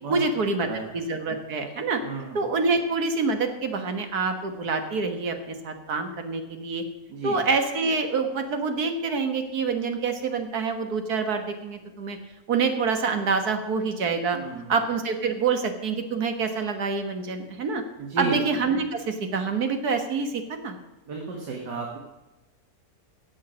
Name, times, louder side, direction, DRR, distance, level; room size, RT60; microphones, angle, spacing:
voice 1, 0.1-0.7 0.9-2.0 2.3-6.8 7.2-12.2 12.5-14.4 14.7-17.8 18.2-20.8, right 4 dB, 65° right, 6 dB, 1.9 m, -26 dB
voice 2, 2.0-2.4 7.1-7.4 14.3-14.8 18.0-18.4 21.1-22.0, right 4 dB, 80° right, 0 dB, 2.2 m, -32 dB
16.0 x 7.4 x 6.2 m, 1.1 s
omnidirectional pair, 1.8 m